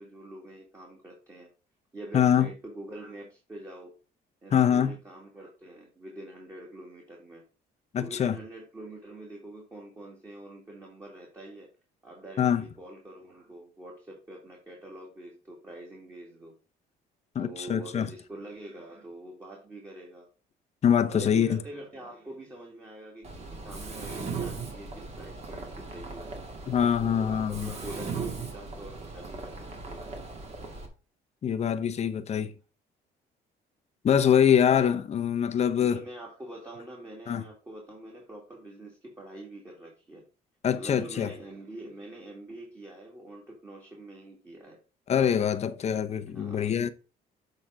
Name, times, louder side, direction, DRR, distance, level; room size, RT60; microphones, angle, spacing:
voice 1, 0.0-1.5 1.9-3.9 4.4-7.4 8.0-11.7 12.0-16.5 17.4-20.3 21.1-26.2 27.0-29.6 29.9-30.0 35.8-40.2 40.7-44.8 46.1-46.8, right 1 dB, 20° right, 2.4 m, -45 dB
voice 2, 2.1-2.5 4.5-4.9 7.9-8.4 12.4-12.6 17.3-18.1 20.8-21.6 26.7-27.7 31.4-32.5 34.0-36.0 37.3-37.4 40.6-41.3 45.1-46.9, left 8 dB, 40° left, 0.8 m, -24 dB
Mechanisms, 23.2-30.9, right 4 dB, 40° right, 2.3 m, -38 dB
7.3 x 3.9 x 5.0 m
cardioid pair, 110°, 17 cm